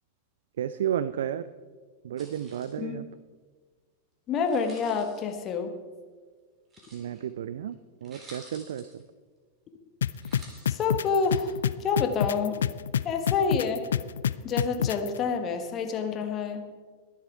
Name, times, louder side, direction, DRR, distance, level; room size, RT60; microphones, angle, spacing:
voice 1, 0.6-1.4 2.0-3.1 6.9-9.0, right 10 dB, 60° right, 15 dB, 0.4 m, -32 dB
sound 1, 2.2-2.8 4.4-5.2 6.7-7.3 7.7-7.8 8.0-9.0 10.1-11.1, right 2 dB, 25° right, 3.4 m, -51 dB
voice 2, 4.3-5.7 10.7-12.6 13.0-13.8 14.4-16.6, left 5 dB, 30° left, 6 dB, 1.3 m, -28 dB
sound 2, 10.0-15.1, left 9 dB, 65° left, 0.4 m, -26 dB
21.5 x 7.4 x 4.6 m, 1.5 s
figure-of-eight pair, 90°, 0 cm